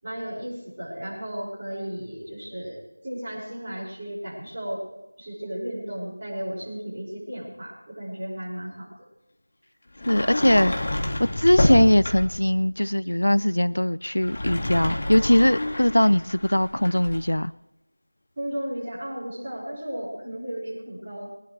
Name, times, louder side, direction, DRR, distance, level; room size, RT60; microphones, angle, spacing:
voice 1, 0.0-4.8 5.2-8.9 18.4-21.3, equal, 25° right, -7 dB, 5.9 m, -34 dB
Sliding door, 10.0-12.5 14.1-17.3, left 1 dB, 35° left, 2.1 m, -28 dB
voice 2, 10.1-10.8 11.2-17.5, left 1 dB, 70° left, 19 dB, 0.4 m, -20 dB
21.0 x 20.0 x 3.3 m, 0.93 s
figure-of-eight pair, 170°, 0 cm